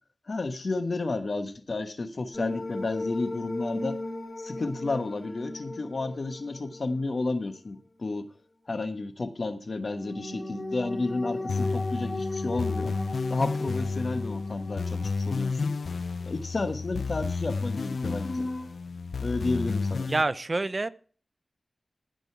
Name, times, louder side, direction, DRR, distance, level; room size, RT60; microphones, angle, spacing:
voice 1, 0.3-4.0 4.4-8.3 8.7-13.0 13.3-15.7 16.3-18.5 19.2-20.1, left 3 dB, 65° left, 1.3 m, -31 dB
sound 1, 2.3-7.5 9.8-15.9 16.2-16.3 17.7-18.7, left 2 dB, 40° left, 3.4 m, -37 dB
sound 2, 11.5-20.2, left 4 dB, 85° left, 0.4 m, -31 dB
voice 2, 20.1-20.9, right 2 dB, 45° right, 0.6 m, -27 dB
16.0 x 5.4 x 4.6 m
cardioid pair, 45°, 0 cm